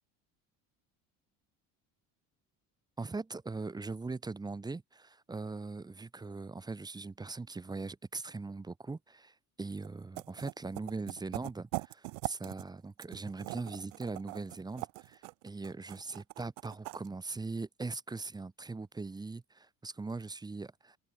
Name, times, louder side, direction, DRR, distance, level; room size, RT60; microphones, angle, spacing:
voice 1, 3.0-21.0, right 3 dB, 10° right, 0.6 m, -41 dB
sound 1, 9.8-9.9 10.2-12.7 13.0-17.1, right 33 dB, 90° right, 0.8 m, -41 dB
open air
supercardioid pair, 90°, 37 cm